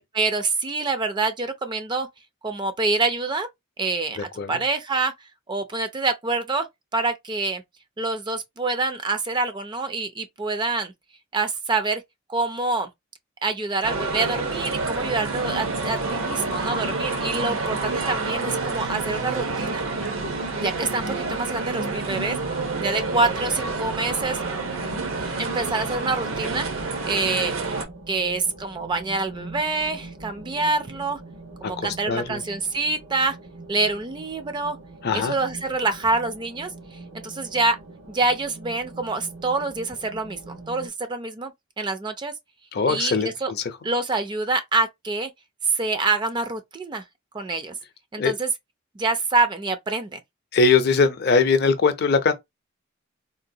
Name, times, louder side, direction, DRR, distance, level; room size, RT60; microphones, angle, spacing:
voice 1, 0.0-2.1 2.4-3.5 3.8-4.2 4.5-5.1 5.5-6.7 6.9-7.6 8.0-10.9 11.3-12.0 12.3-12.9 13.4-19.8 20.5-24.4 25.2-26.7 27.1-27.6 28.1-31.2 31.6-33.4 33.7-34.8 35.1-37.8 38.1-42.3 42.9-43.5 43.8-45.3 45.6-47.0 47.3-47.8 48.1-48.5 49.0-50.2, right 3 dB, 20° right, 0.4 m, -26 dB
voice 2, 4.2-4.5 19.9-20.4 31.6-32.4 35.0-35.4 42.7-43.6 48.2-48.4 50.5-52.3, left 4 dB, 50° left, 0.5 m, -22 dB
sound 1, 13.8-27.9, right 3 dB, 70° right, 0.7 m, -28 dB
sound 2, 22.4-40.9, right 2 dB, 90° right, 1.2 m, -42 dB
3.8 x 2.1 x 2.6 m
head